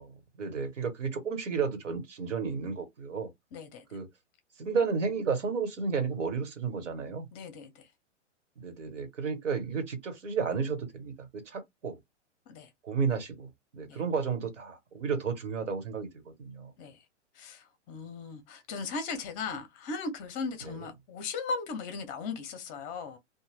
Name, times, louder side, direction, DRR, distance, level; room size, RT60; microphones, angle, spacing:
voice 1, 0.0-3.3 3.9-4.1 4.6-7.3 8.6-12.0 12.8-16.7 20.6-20.9, right 5 dB, 75° right, 1.2 m, -32 dB
voice 2, 3.5-3.8 7.3-7.7 12.5-12.7 13.9-14.0 16.8-17.0 17.4-23.2, left 4 dB, 20° left, 0.6 m, -37 dB
2.5 x 2.2 x 3.3 m
hypercardioid pair, 135°, 37 cm